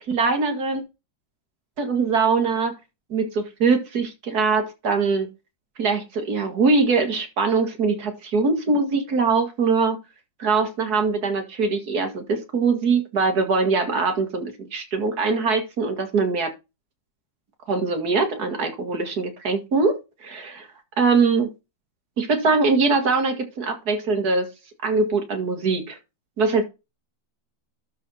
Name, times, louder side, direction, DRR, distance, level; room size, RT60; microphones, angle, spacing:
voice 1, 0.1-0.8 1.8-2.8 3.1-5.3 5.8-10.0 10.4-16.5 17.7-20.7 21.0-21.5 22.2-24.5 24.8-26.0 26.4-26.6, right 4 dB, 55° right, 2.4 m, -22 dB
12.0 x 4.4 x 5.6 m
omnidirectional pair, 2.0 m